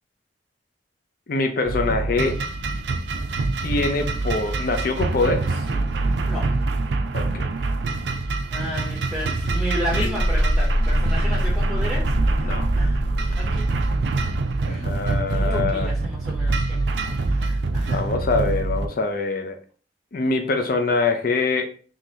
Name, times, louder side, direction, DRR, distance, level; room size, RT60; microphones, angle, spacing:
voice 1, 1.3-2.4 3.6-5.6 7.1-7.5 12.4-12.7 14.7-15.9 17.9-19.6 20.1-21.7, left 3 dB, 55° left, 5 dB, 0.5 m, -24 dB
sound 1, 1.7-18.9, right 3 dB, 70° right, 0.4 m, -25 dB
voice 2, 6.3-6.7 8.5-13.0 13.3-13.7 14.2-14.3 14.6-14.9 15.3-16.9 17.2-18.1, equal, ahead, -4 dB, 0.7 m, -33 dB
sound 2, 9.9-14.5, equal, 85° left, 0.9 m, -25 dB
3.8 x 3.1 x 2.8 m, 0.41 s
head